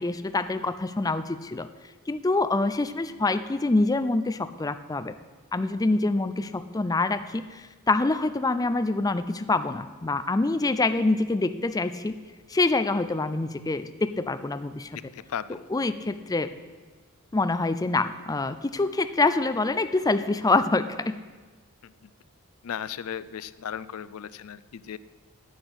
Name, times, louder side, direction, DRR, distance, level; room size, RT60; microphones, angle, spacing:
voice 1, 0.0-1.7 2.1-5.1 5.5-12.1 12.5-14.9 15.7-16.5 17.3-21.2, left 3 dB, 15° left, 11 dB, 0.4 m, -26 dB
voice 2, 15.1-15.6 22.0-22.1 22.6-25.0, left 8 dB, 75° left, 17 dB, 0.4 m, -36 dB
10.5 x 8.9 x 7.9 m, 1.4 s
head